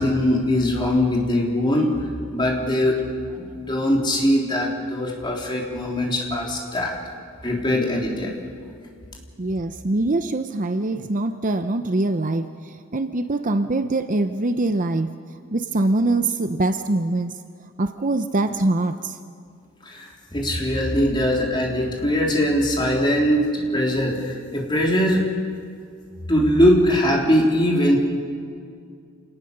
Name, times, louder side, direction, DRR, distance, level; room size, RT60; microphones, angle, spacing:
voice 1, 0.0-3.0 3.3-7.0 7.4-8.3 19.8-25.3 26.3-28.0, equal, 20° left, -2 dB, 3.5 m, -21 dB
voice 2, 9.4-15.1 15.5-17.3 17.8-19.2, right 2 dB, 35° right, 9 dB, 0.7 m, -23 dB
27.5 x 19.0 x 6.7 m, 2.2 s
head